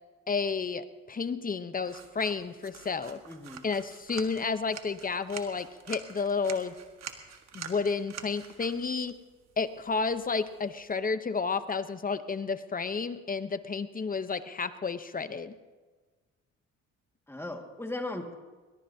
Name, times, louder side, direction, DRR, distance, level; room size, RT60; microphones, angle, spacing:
voice 1, 0.3-3.2 3.6-6.7 7.5-9.2 9.6-15.5, left 4 dB, 30° left, 12 dB, 0.8 m, -31 dB
sound 1, 1.8-10.9, right 7 dB, 60° right, 1.6 m, -47 dB
voice 2, 3.3-3.7 17.3-18.3, left 2 dB, 10° left, 3 dB, 1.9 m, -37 dB
21.5 x 20.5 x 2.8 m, 1.4 s
cardioid pair, 90°, 30 cm